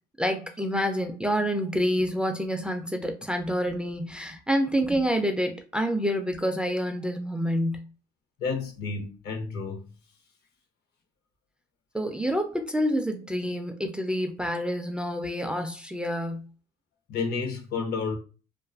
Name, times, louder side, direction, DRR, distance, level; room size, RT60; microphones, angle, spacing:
voice 1, 0.2-7.9 11.9-16.5, equal, 5° right, 0.3 m, -28 dB
voice 2, 8.4-9.9 17.1-18.2, left 4 dB, 70° left, 0.7 m, -31 dB
2.4 x 2.4 x 2.3 m
cardioid pair, 110°, 17 cm